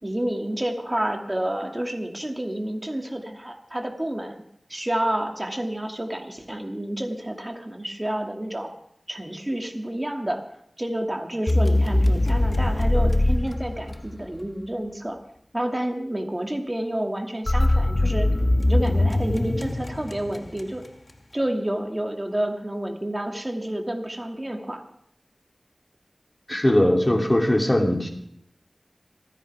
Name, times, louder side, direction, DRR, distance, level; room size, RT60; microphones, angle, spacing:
voice 1, 0.0-4.4 4.7-8.7 9.1-10.4 10.8-15.2 15.5-18.3 18.7-20.8 21.3-24.8, right 1 dB, 25° right, 3 dB, 2.4 m, -29 dB
sound 1, 11.5-14.5 17.5-20.9, left 1 dB, 45° left, 1.0 m, -22 dB
voice 2, 26.5-28.1, left 1 dB, 25° left, 1 dB, 3.1 m, -20 dB
27.5 x 9.9 x 3.6 m, 0.71 s
wide cardioid pair, 40°, 0 cm